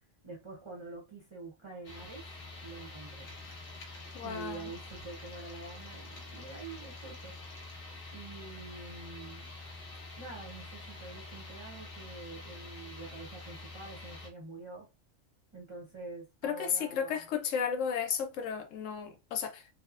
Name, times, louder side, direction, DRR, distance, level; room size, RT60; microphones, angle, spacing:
voice 1, 0.2-2.2 2.6-3.7 3.9-7.3 8.1-9.5 10.2-14.9 15.5-17.3, right 3 dB, 30° right, 0.7 m, -46 dB
sound 1, 1.8-14.3, left 2 dB, 50° left, 0.9 m, -46 dB
voice 2, 4.1-4.7 16.4-19.7, left 7 dB, 80° left, 0.9 m, -33 dB
2.9 x 2.0 x 2.4 m
omnidirectional pair, 1.3 m